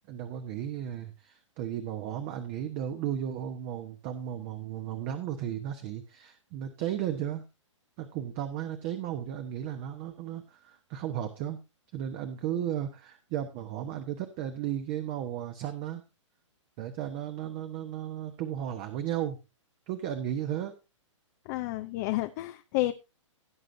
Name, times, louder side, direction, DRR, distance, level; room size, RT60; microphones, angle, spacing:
voice 1, 0.1-7.4 8.0-11.6 11.9-16.0 16.8-19.4 19.9-20.8, right 10 dB, 30° right, 8 dB, 1.1 m, -34 dB
voice 2, 21.5-22.9, left 17 dB, 35° left, 7 dB, 0.6 m, -30 dB
17.0 x 7.6 x 2.7 m, 0.27 s
hypercardioid pair, 140°, 16 cm